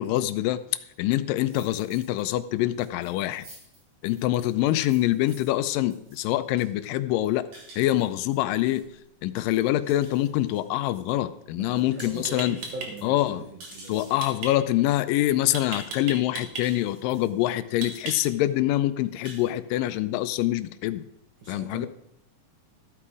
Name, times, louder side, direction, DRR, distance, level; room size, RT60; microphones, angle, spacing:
voice 1, 0.0-3.5 4.0-7.5 7.8-8.9 9.2-12.6 13.0-13.4 13.9-21.0 21.5-21.9, left 14 dB, 85° left, 13 dB, 2.3 m, -25 dB
sound 1, 1.4-2.2 2.6-11.2 11.5-14.4 14.9-15.0 15.2-15.3 15.7-16.3 16.6-17.4 17.7-18.3 18.7-18.8 19.1-19.5, right 2 dB, 85° right, 6.7 m, -50 dB
voice 2, 11.5-14.0 21.4-21.9, right 3 dB, 65° right, 2 dB, 1.1 m, -40 dB
sound 2, 11.6-11.8 12.2-12.9 14.2-14.5 15.5-16.6 17.8-18.4, right 3 dB, 50° right, 2.5 m, -34 dB
14.5 x 8.7 x 4.9 m, 0.79 s
omnidirectional pair, 3.8 m